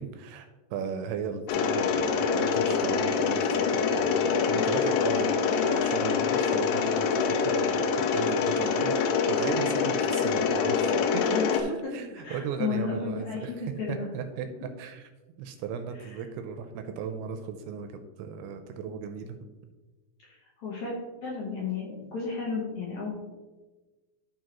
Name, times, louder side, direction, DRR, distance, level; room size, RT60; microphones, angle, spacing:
voice 1, 0.0-11.2 11.5-14.5 14.8-15.1 15.4-19.4, right 6 dB, 80° right, 6 dB, 2.5 m, -36 dB
Mechanisms, 1.5-11.6, left 5 dB, 85° left, 2.8 m, -25 dB
voice 2, 11.3-11.9 12.2-14.1 20.2-20.9 21.2-23.1, left 5 dB, 65° left, -4 dB, 1.9 m, -33 dB
13.5 x 4.7 x 3.0 m, 1.2 s
omnidirectional pair, 4.9 m